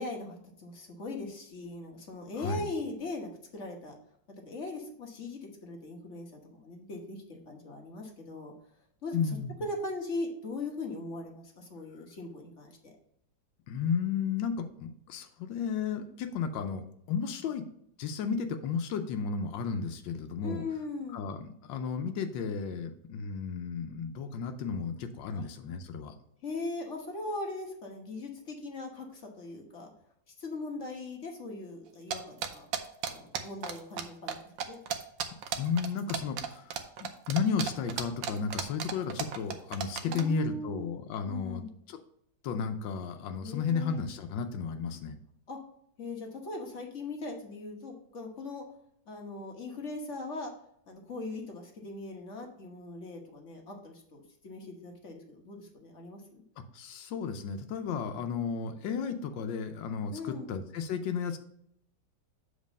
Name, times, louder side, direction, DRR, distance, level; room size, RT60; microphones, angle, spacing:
voice 1, 0.0-4.0 4.5-8.5 9.0-12.9 20.4-21.2 25.3-25.5 26.4-29.9 30.4-32.6 33.1-34.4 34.7-34.8 40.0-41.0 41.3-41.7 43.4-44.0 45.5-45.6 46.0-48.6 49.1-50.5 50.9-56.4 60.1-60.5, left 2 dB, 45° left, 1 dB, 1.3 m, -40 dB
voice 2, 9.1-9.5 13.7-17.6 18.0-20.6 21.1-26.1 35.5-36.6 37.0-41.6 42.4-45.2 56.7-60.2 60.5-61.4, left 6 dB, 90° left, 7 dB, 1.4 m, -33 dB
sound 1, 32.1-34.0 34.3-34.4 34.6-40.2, right 8 dB, 85° right, 1.4 m, -34 dB
7.3 x 4.0 x 5.3 m, 0.70 s
omnidirectional pair, 2.0 m